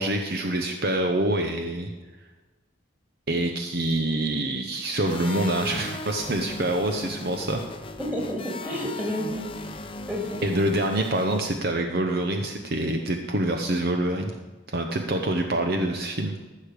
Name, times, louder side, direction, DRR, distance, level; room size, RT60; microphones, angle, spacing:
voice 1, 0.0-1.9 3.3-7.6 10.4-14.3 14.7-16.4, right 1 dB, 50° right, 4 dB, 0.9 m, -26 dB
sound 1, 5.0-11.6, left 2 dB, 25° left, 0.7 m, -38 dB
voice 2, 8.0-9.8 10.1-10.4, equal, 10° right, -1 dB, 2.6 m, -31 dB
14.5 x 6.6 x 5.1 m, 1.3 s
head